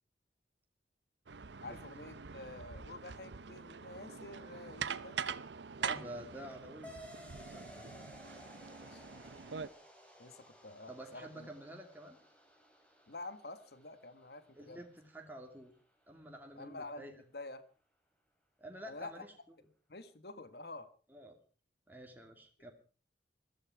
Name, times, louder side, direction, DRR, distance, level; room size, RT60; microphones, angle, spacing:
sound 1, 1.3-9.7, right 6 dB, 85° right, 0.8 m, -44 dB
voice 1, 1.6-5.2 8.9-9.0 10.2-11.5 13.1-14.8 16.6-17.6 18.9-19.2 19.9-20.9, left 2 dB, 65° left, 12 dB, 1.4 m, -48 dB
voice 2, 5.8-6.9 7.5-7.9 10.9-12.2 14.5-15.7 16.1-17.1 18.6-19.3 21.1-21.4 21.9-22.7, right 1 dB, 10° right, 2 dB, 2.5 m, -49 dB
sound 2, 6.8-15.9, equal, 5° left, 3.6 m, -57 dB
20.5 x 14.0 x 4.8 m, 0.39 s
head